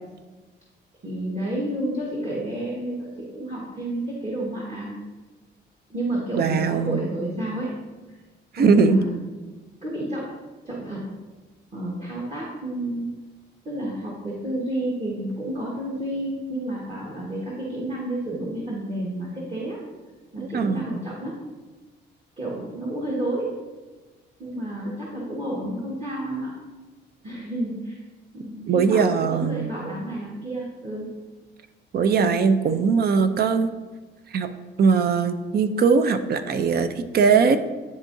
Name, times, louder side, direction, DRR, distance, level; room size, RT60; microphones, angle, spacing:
voice 1, 1.0-4.9 5.9-7.7 8.6-9.3 9.8-10.3 10.6-11.0 11.7-13.1 13.6-19.8 20.3-21.4 22.4-23.5 24.4-26.5 27.2-28.0 28.3-31.1 32.6-32.8, right 1 dB, 30° right, -5 dB, 1.5 m, -30 dB
voice 2, 6.4-7.0 8.5-9.0 20.4-20.8 28.7-29.7 31.9-33.7 34.3-34.5 34.8-37.6, right 5 dB, 50° right, 10 dB, 0.6 m, -20 dB
10.5 x 3.7 x 2.6 m, 1.3 s
cardioid pair, 90°, 20 cm